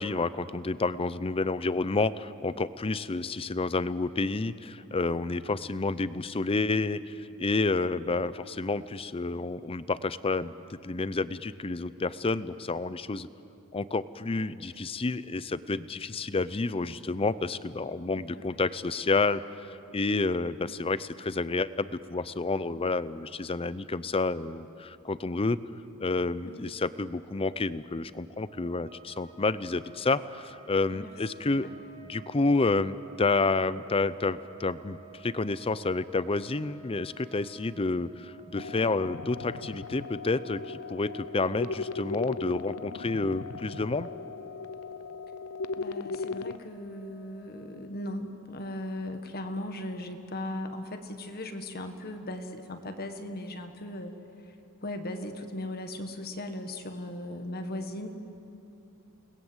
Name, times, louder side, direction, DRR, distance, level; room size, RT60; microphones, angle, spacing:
voice 1, 0.0-13.3 13.7-19.4 19.9-25.6 26.0-31.7 32.0-35.0 35.2-44.1, left 3 dB, 25° left, 16 dB, 0.6 m, -29 dB
voice 2, 18.2-18.6 26.4-26.7 30.9-31.7 45.8-54.1 54.4-54.5 54.8-58.1, left 1 dB, 45° left, 6 dB, 1.6 m, -38 dB
sound 1, 28.4-48.1, right 2 dB, 20° right, 2.1 m, -54 dB
sound 2, 38.6-46.6, left 4 dB, 80° left, 0.7 m, -38 dB
29.5 x 20.0 x 8.1 m, 2.8 s
head